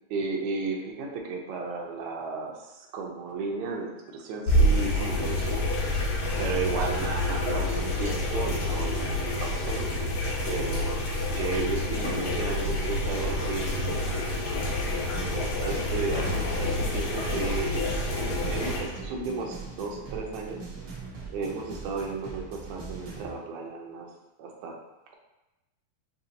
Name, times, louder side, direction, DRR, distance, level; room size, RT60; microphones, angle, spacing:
voice 1, 0.1-5.8 6.4-9.8 10.5-14.4 15.1-20.6 21.3-24.1 24.4-24.7, right 4 dB, 75° right, 0 dB, 1.9 m, -34 dB
sound 1, 4.5-18.8, left 1 dB, 85° left, 1.1 m, -28 dB
sound 2, 14.6-23.3, right 4 dB, 90° right, 0.9 m, -42 dB
6.9 x 2.7 x 2.7 m, 0.98 s
omnidirectional pair, 3.4 m